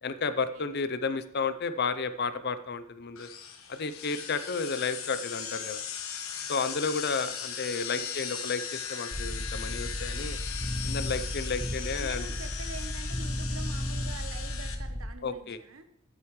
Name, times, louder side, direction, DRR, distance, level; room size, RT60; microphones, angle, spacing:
voice 1, 0.0-3.3 3.7-5.8 6.5-10.4 10.8-12.2 15.2-15.6, left 4 dB, 50° left, 12 dB, 0.7 m, -32 dB
sound 1, 3.2-14.7, left 8 dB, 85° left, 1.3 m, -38 dB
sound 2, 9.1-15.1, equal, 10° left, 0.8 m, -34 dB
voice 2, 11.9-15.9, right 3 dB, 80° right, 8 dB, 1.1 m, -45 dB
12.0 x 9.3 x 3.2 m, 0.80 s
head